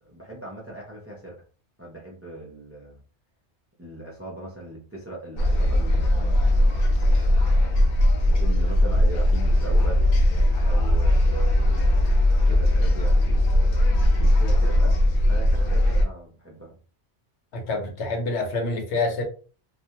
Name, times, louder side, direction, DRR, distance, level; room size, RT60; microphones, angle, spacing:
voice 1, 0.0-1.4 1.8-3.0 3.8-6.4 8.3-10.1 10.6-11.8 12.5-13.8 14.1-15.0 15.3-16.7, right 1 dB, 15° right, -3 dB, 0.5 m, -39 dB
sound 1, 5.4-16.0, left 1 dB, 65° left, 0.7 m, -19 dB
voice 2, 17.5-19.2, left 2 dB, 80° left, 2 dB, 1.1 m, -27 dB
2.4 x 2.2 x 2.8 m, 0.38 s
omnidirectional pair, 1.1 m